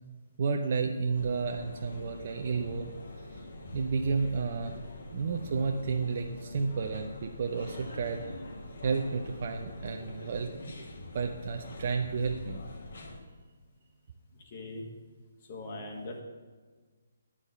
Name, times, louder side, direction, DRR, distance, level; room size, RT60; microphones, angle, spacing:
voice 1, 0.4-2.9 3.7-4.7 5.1-8.2 8.8-10.7 11.1-12.6, right 5 dB, 50° right, 3 dB, 0.6 m, -31 dB
sound 1, 1.1-13.2, left 1 dB, 65° left, 1.7 m, -44 dB
voice 2, 14.5-14.9 15.5-16.2, left 2 dB, 40° left, 0 dB, 1.5 m, -40 dB
9.8 x 4.9 x 6.6 m, 1.4 s
figure-of-eight pair, 145°, 0 cm